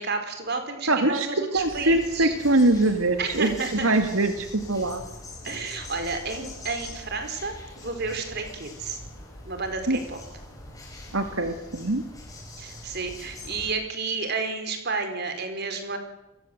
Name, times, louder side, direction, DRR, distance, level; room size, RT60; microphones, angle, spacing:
voice 1, 0.0-2.4 3.2-3.9 5.4-9.0 9.4-10.2 12.6-16.0, right 4 dB, 55° right, 7 dB, 4.8 m, -31 dB
voice 2, 0.9-5.0 9.9-10.0 11.1-12.0, right 2 dB, 90° right, 6 dB, 2.2 m, -23 dB
sound 1, 1.5-13.7, left 1 dB, 15° left, 7.6 m, -43 dB
28.5 x 22.0 x 8.1 m, 0.89 s
head